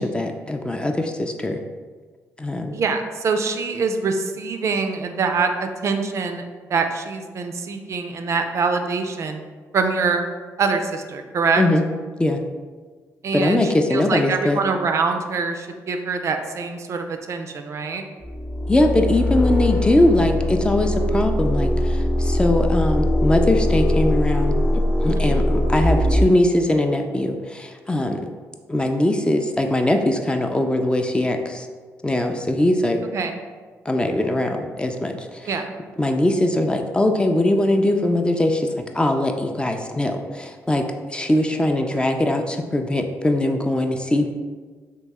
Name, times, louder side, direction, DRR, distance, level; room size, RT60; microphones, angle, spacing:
voice 1, 0.0-1.6 2.4-2.7 11.6-11.8 12.2-12.4 13.3-14.6 18.7-24.5 25.0-28.2 28.7-31.7 32.0-33.0 33.9-35.5 36.0-38.7 38.9-44.3, left 1 dB, 15° left, 4 dB, 0.4 m, -21 dB
voice 2, 2.7-6.4 6.7-9.4 9.7-10.3 10.6-11.6 13.2-18.0 33.1-33.4 35.5-35.7, right 4 dB, 55° right, 6 dB, 0.4 m, -24 dB
sound 1, 18.2-26.3, left 1 dB, 40° left, 0.7 m, -21 dB
3.0 x 2.7 x 3.5 m, 1.4 s
cardioid pair, 70°, 6 cm